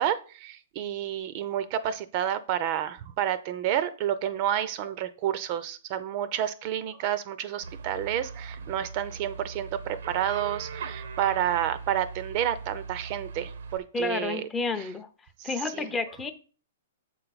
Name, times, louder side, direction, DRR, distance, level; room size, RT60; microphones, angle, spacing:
voice 1, 0.0-14.5 14.8-14.9 15.4-15.9, right 10 dB, 40° right, 14 dB, 0.5 m, -30 dB
sound 1, 7.6-13.8, right 5 dB, 75° right, 0.7 m, -40 dB
voice 2, 13.9-15.1 15.4-16.3, left 3 dB, 15° left, 9 dB, 0.5 m, -30 dB
7.2 x 4.5 x 4.0 m, 0.38 s
hypercardioid pair, 145°, 0 cm